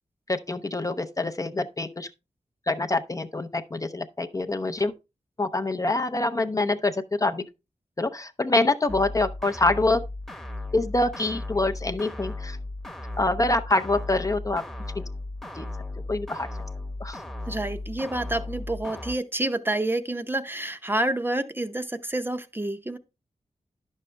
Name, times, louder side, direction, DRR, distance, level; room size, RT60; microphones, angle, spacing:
voice 1, 0.3-2.1 2.7-4.9 5.4-7.4 8.0-10.0 10.7-12.6 13.2-14.6 15.0-15.1 15.6-15.7 16.1-16.5 17.0-17.2, left 2 dB, 25° left, 0.6 m, -25 dB
sound 1, 8.9-19.1, left 2 dB, 5° left, 1.0 m, -36 dB
voice 2, 17.5-23.0, right 1 dB, 15° right, 0.7 m, -28 dB
11.0 x 6.4 x 3.3 m
wide cardioid pair, 115°, 13 cm